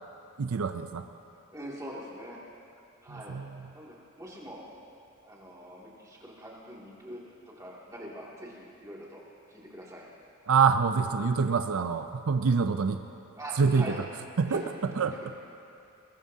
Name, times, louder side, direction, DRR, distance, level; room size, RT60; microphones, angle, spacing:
voice 1, 0.4-1.0 3.1-3.6 10.5-13.0 13.6-13.9 14.4-14.6 15.0-15.1, right 5 dB, 75° right, 8 dB, 0.5 m, -26 dB
voice 2, 1.5-2.4 3.0-3.4 3.7-4.6 5.2-7.2 7.6-9.2 9.5-10.1 13.4-14.0 14.5-14.6 15.0-15.2, equal, 15° right, -5 dB, 2.4 m, -43 dB
21.5 x 20.0 x 2.8 m, 2.6 s
head